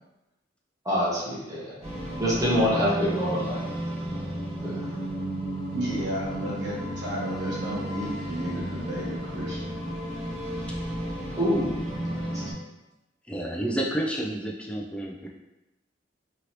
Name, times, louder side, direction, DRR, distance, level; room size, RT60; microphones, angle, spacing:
voice 1, 0.8-1.7 2.2-3.6 4.1-4.2 4.6-4.9 11.4-11.7 12.1-12.2, equal, 20° right, -7 dB, 0.8 m, -26 dB
sound 1, 1.8-12.5, right 1 dB, 35° right, 1.4 m, -33 dB
voice 2, 5.7-9.7, equal, 70° right, -7 dB, 1.1 m, -33 dB
voice 3, 13.3-15.3, right 1 dB, 5° left, -1 dB, 0.3 m, -30 dB
3.0 x 2.7 x 2.9 m, 0.97 s
head